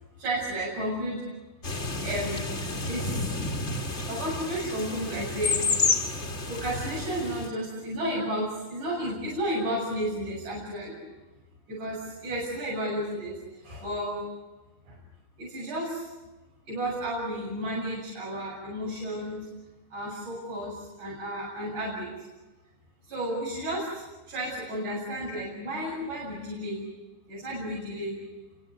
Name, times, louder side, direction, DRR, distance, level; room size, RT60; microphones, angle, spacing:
voice 1, 0.2-1.2 1.8-3.3 4.0-5.6 6.5-11.0 11.7-14.2 14.9-15.0 15.4-16.1 16.7-19.4 19.9-22.1 23.1-26.9 27.3-28.2, right 1 dB, 90° right, -5 dB, 9.1 m, -32 dB
sound 1, 1.6-7.5, left 3 dB, 25° left, 1.8 m, -30 dB
30.0 x 26.0 x 6.7 m, 1.2 s
omnidirectional pair, 3.4 m